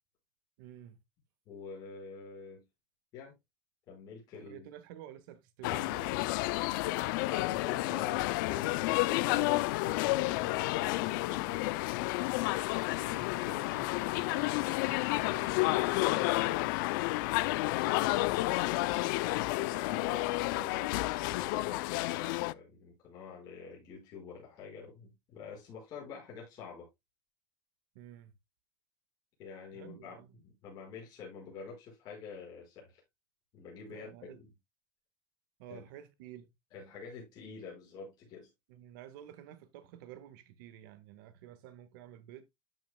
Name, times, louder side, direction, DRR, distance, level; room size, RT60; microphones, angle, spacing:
voice 1, 0.6-1.0 4.3-6.2 12.9-16.7 27.9-28.3 29.7-30.4 33.9-34.4 35.6-36.5 38.7-42.4, right 11 dB, 80° right, 1.6 m, -51 dB
voice 2, 1.5-2.6 3.1-3.3 3.9-4.7 7.1-11.8 17.5-26.9 29.4-33.0 33.5-34.5 35.7-35.8 36.7-38.5, left 5 dB, 35° left, 5.4 m, -46 dB
sound 1, 5.6-22.5, left 21 dB, 80° left, 0.4 m, -31 dB
13.0 x 5.9 x 2.2 m
cardioid pair, 180°, 11 cm